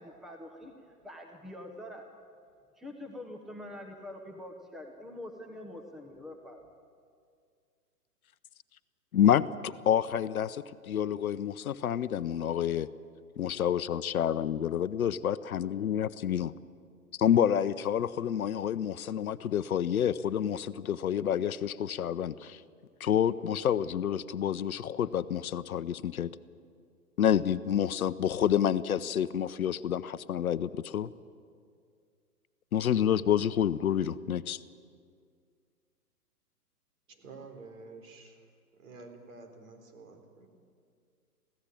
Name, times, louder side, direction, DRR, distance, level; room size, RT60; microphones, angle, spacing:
voice 1, 0.0-2.1 2.8-6.7, left 1 dB, ahead, 3 dB, 1.1 m, -45 dB
voice 2, 9.1-12.9 13.4-16.5 17.2-22.6 23.0-26.4 27.2-31.1 32.7-34.6, left 9 dB, 65° left, 14 dB, 0.8 m, -28 dB
voice 3, 37.1-38.5 38.8-40.5, right 3 dB, 55° right, 5 dB, 4.0 m, -49 dB
23.0 x 16.5 x 8.7 m, 2.2 s
hypercardioid pair, 130°, 47 cm